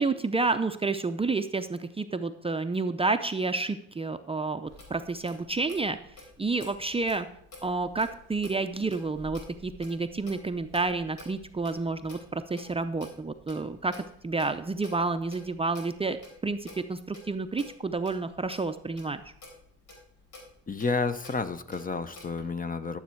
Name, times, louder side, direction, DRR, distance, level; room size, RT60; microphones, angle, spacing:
voice 1, 0.0-6.0 6.4-7.3 7.6-16.2 16.4-19.2, right 3 dB, 20° right, 8 dB, 0.5 m, -30 dB
Clock, 4.7-22.4, left 2 dB, 80° left, 4.1 m, -50 dB
voice 2, 20.7-23.0, left 4 dB, 30° left, 11 dB, 0.8 m, -30 dB
12.0 x 7.2 x 4.5 m, 0.73 s
cardioid pair, 90°, 30 cm